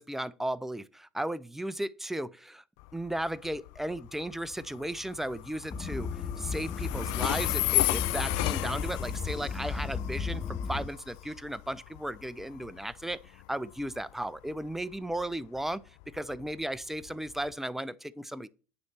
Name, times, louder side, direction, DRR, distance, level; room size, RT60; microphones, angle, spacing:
voice 1, 0.0-2.6 2.9-18.5, right 1 dB, 5° right, 0.5 m, -35 dB
Train, 2.8-17.5, left 21 dB, 75° left, 0.4 m, -35 dB
sound 1, 5.7-10.9, left 5 dB, 35° left, 0.8 m, -35 dB
9.5 x 3.3 x 5.8 m
hypercardioid pair, 70°, 7 cm